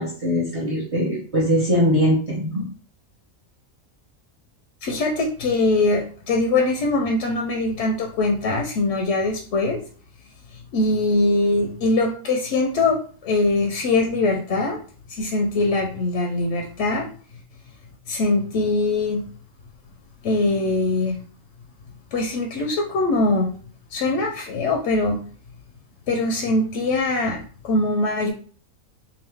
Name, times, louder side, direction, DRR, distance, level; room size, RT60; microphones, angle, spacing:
voice 1, 0.0-2.6, equal, 35° right, -3 dB, 0.6 m, -21 dB
voice 2, 4.8-9.8 10.7-14.8 15.1-17.1 18.1-19.2 20.2-21.2 22.1-23.5 23.9-25.2 26.1-28.3, left 2 dB, 65° left, 1 dB, 0.8 m, -22 dB
2.9 x 2.4 x 3.3 m, 0.43 s
omnidirectional pair, 1.4 m